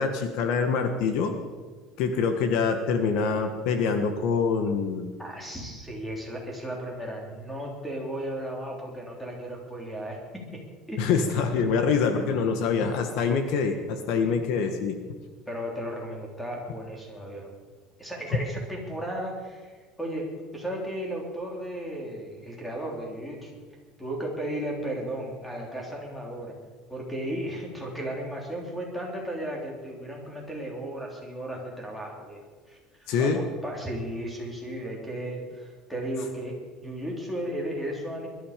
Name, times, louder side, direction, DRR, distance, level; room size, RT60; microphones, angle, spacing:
voice 1, 0.0-1.3 2.0-5.1 11.0-15.0 18.3-18.4 33.1-33.4, left 5 dB, 60° left, 7 dB, 1.4 m, -25 dB
voice 2, 5.2-10.6 10.9-11.1 14.2-14.4 15.5-17.5 18.0-23.5 24.0-26.6 26.9-32.8 33.2-38.3, right 1 dB, 5° left, -1 dB, 3.4 m, -35 dB
21.5 x 12.5 x 5.2 m, 1.4 s
cardioid pair, 165°, 0 cm